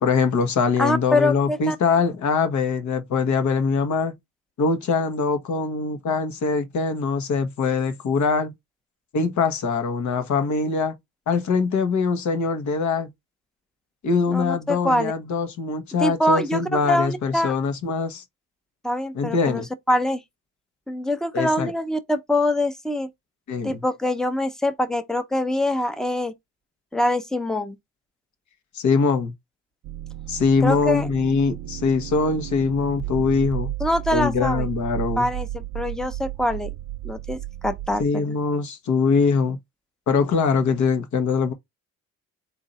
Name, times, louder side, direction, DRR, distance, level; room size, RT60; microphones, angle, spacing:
voice 1, 0.0-4.1 4.6-8.5 9.1-11.0 11.3-13.1 14.0-18.2 19.1-19.7 21.3-21.7 23.5-23.8 28.7-29.3 30.3-33.7 34.1-35.3 38.0-39.6 40.1-41.5, left 4 dB, 70° left, 1.2 m, -23 dB
voice 2, 0.8-1.8 14.3-15.1 16.0-17.5 18.8-20.2 20.9-23.1 23.6-26.3 26.9-27.8 30.6-31.1 33.8-34.7 35.2-36.7 37.0-38.2, left 1 dB, ahead, 0.7 m, -24 dB
sound 1, 29.8-38.1, right 16 dB, 70° right, 0.4 m, -33 dB
3.9 x 2.8 x 4.1 m
cardioid pair, 90°, 30 cm